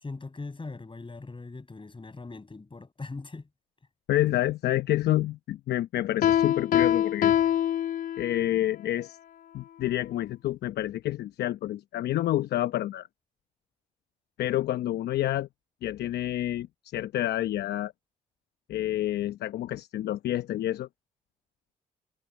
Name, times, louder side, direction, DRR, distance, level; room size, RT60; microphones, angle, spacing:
voice 1, 0.0-3.5, left 3 dB, 30° left, 7.1 m, -40 dB
voice 2, 4.1-7.3 8.2-9.2 9.5-13.1 14.4-15.5 15.8-16.7 16.9-17.9 18.7-20.9, left 13 dB, 75° left, 1.0 m, -28 dB
Piano, 6.2-8.5, left 11 dB, 55° left, 0.5 m, -24 dB
hypercardioid pair, 50°, 17 cm